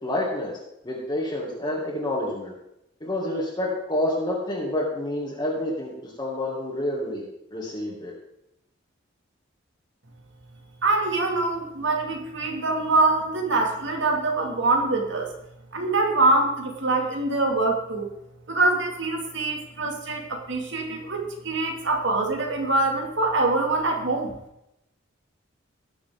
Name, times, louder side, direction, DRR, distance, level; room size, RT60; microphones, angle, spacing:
voice 1, 0.0-0.5 0.9-2.5 3.0-5.9 6.2-7.2 7.5-8.1, left 1 dB, 25° left, -5 dB, 2.2 m, -28 dB
voice 2, 10.8-15.3 15.7-18.1 18.5-24.3, right 2 dB, 70° right, 2 dB, 2.2 m, -24 dB
18.5 x 6.8 x 3.7 m, 0.85 s
head